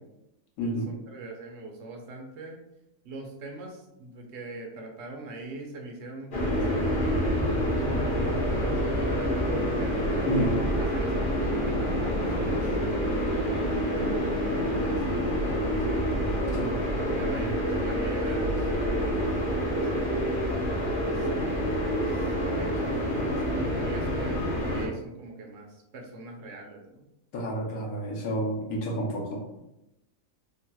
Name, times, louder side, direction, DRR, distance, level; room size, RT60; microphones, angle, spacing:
voice 1, 0.6-0.9 10.2-10.5 16.5-16.7 17.4-17.5 27.3-29.6, right 1 dB, 70° left, -1 dB, 1.1 m, -30 dB
voice 2, 1.1-2.6 3.1-3.7 4.0-10.3 10.9-11.5 11.8-12.6 12.9-14.0 14.4-16.0 17.2-20.3 21.0-21.1 21.4-22.0 22.6-25.6 25.9-26.8, right 2 dB, 60° right, 1 dB, 0.8 m, -42 dB
sound 1, 6.3-24.9, equal, 50° left, 0.6 m, -27 dB
3.1 x 2.9 x 2.2 m, 0.88 s
omnidirectional pair, 1.7 m